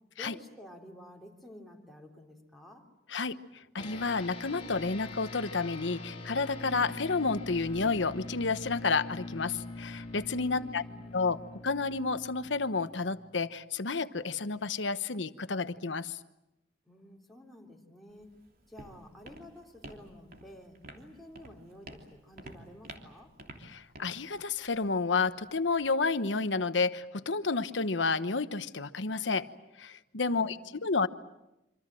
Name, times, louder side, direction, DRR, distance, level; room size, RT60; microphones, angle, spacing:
voice 1, 0.2-2.9 10.5-11.5 16.9-18.3 18.7-23.3 30.2-31.0, left 1 dB, ahead, -1 dB, 3.5 m, -52 dB
voice 2, 3.1-10.8 11.1-16.2 23.6-29.5 29.8-31.1, left 4 dB, 75° left, 12 dB, 1.1 m, -31 dB
sound 1, 3.8-13.5, left 2 dB, 30° left, 3.2 m, -44 dB
Walk footsteps, 18.1-26.1, right 2 dB, 55° right, 3.1 m, -51 dB
26.5 x 25.5 x 7.7 m, 0.92 s
head